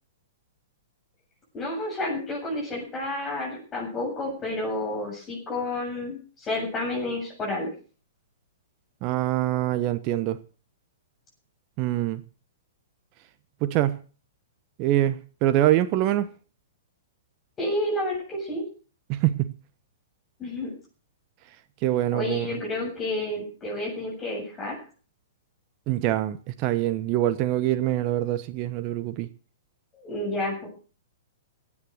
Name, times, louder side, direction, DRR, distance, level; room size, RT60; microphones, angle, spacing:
voice 1, 1.5-7.7 17.6-18.6 20.4-20.7 22.1-24.7 29.9-30.7, left 1 dB, 20° left, 7.5 m, -30 dB
voice 2, 9.0-10.4 11.8-12.2 13.6-14.0 14.8-16.3 19.1-19.5 21.8-22.6 25.9-29.3, right 13 dB, 35° right, 1.0 m, -24 dB
16.0 x 9.8 x 6.5 m
figure-of-eight pair, 110°, 0 cm